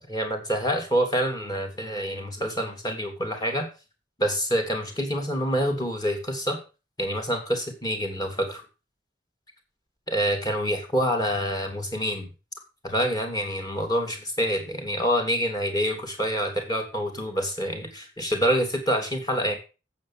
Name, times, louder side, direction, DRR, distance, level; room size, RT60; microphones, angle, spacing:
voice 1, 0.1-3.7 4.2-6.6 7.0-8.6 10.1-12.3 12.8-19.6, equal, 20° left, 3 dB, 2.8 m, -26 dB
9.0 x 7.5 x 7.3 m, 0.32 s
head